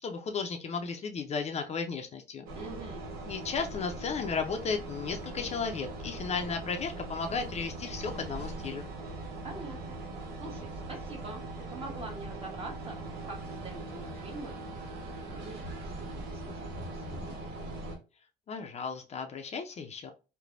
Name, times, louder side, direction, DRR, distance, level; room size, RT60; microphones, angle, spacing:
voice 1, 0.0-2.5 3.3-8.9 18.5-20.1, left 5 dB, 40° left, 5 dB, 0.5 m, -34 dB
voice 2, 2.5-3.1 9.4-17.5, right 3 dB, 35° right, 1 dB, 1.2 m, -46 dB
sound 1, 2.5-18.0, right 2 dB, 90° right, 1.0 m, -41 dB
3.2 x 2.1 x 2.4 m, 0.31 s
cardioid pair, 110°, 17 cm